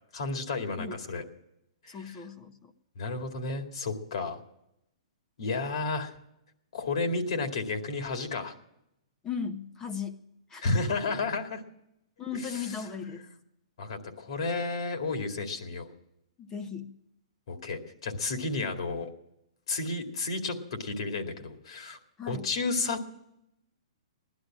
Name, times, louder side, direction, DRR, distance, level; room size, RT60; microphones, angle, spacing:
voice 1, 0.1-1.2 1.8-2.2 3.0-4.4 5.4-6.1 6.7-8.5 10.6-11.6 12.3-13.4 13.8-15.9 17.5-19.1 19.7-22.0 22.3-23.0, left 3 dB, 65° left, 5 dB, 2.3 m, -32 dB
voice 2, 0.8-1.2 1.9-2.7 9.2-10.2 10.5-10.6 12.2-13.2 16.4-17.0 22.2-22.5, left 6 dB, 15° left, 8 dB, 0.9 m, -37 dB
16.5 x 11.5 x 7.5 m, 0.83 s
hypercardioid pair, 160°, 3 cm